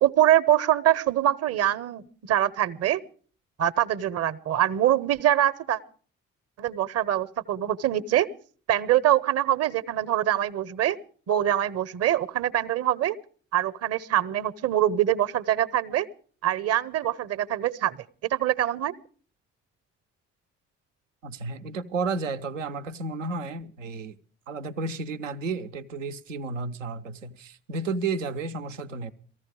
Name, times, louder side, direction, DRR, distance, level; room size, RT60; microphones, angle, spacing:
voice 1, 0.0-3.0 3.6-5.8 6.6-8.3 8.7-11.0 11.3-13.2 13.5-16.1 16.4-18.0 18.3-18.9, right 12 dB, 40° right, 0.8 m, -24 dB
voice 2, 21.2-24.2 24.5-29.1, right 3 dB, 85° right, 0.7 m, -32 dB
19.0 x 14.5 x 4.8 m
figure-of-eight pair, 45°, 37 cm